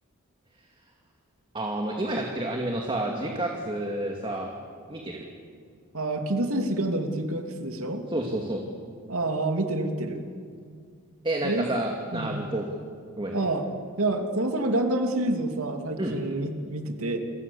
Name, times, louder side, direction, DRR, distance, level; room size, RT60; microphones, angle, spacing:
voice 1, 1.5-4.5 4.9-5.2 8.1-8.6 11.2-12.7 13.2-13.4 16.0-16.2, right 1 dB, 25° right, 1 dB, 2.5 m, -30 dB
voice 2, 5.9-8.0 9.1-10.2 11.4-11.7 12.1-12.5 13.3-13.7 14.0-17.2, right 2 dB, 90° right, 5 dB, 2.9 m, -28 dB
29.0 x 25.0 x 7.2 m, 2.2 s
head